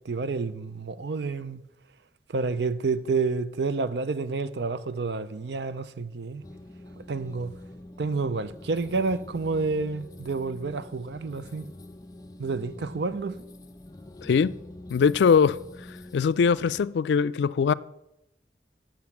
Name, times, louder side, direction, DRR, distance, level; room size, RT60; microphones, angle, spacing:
voice 1, 0.0-1.6 2.3-6.4 7.0-7.5 8.0-11.7 12.4-13.4, right 4 dB, 75° right, 0.5 m, -29 dB
sound 1, 6.4-16.9, left 1 dB, 20° left, 0.5 m, -45 dB
voice 2, 14.2-14.5 14.9-15.6 16.1-17.7, left 6 dB, 80° left, 0.3 m, -21 dB
7.8 x 7.2 x 7.2 m
head